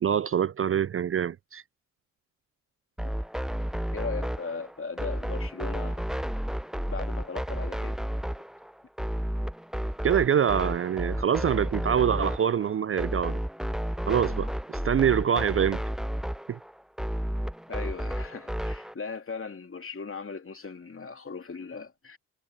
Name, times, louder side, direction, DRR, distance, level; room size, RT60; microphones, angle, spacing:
voice 1, 0.0-1.6 10.0-13.4 14.1-15.8 16.5-16.6, right 8 dB, 35° right, 0.6 m, -25 dB
sound 1, 3.0-18.9, equal, ahead, 0.8 m, -32 dB
voice 2, 3.9-6.0 6.9-8.0 17.7-22.2, left 4 dB, 35° left, 3.1 m, -38 dB
hypercardioid pair, 45°, 38 cm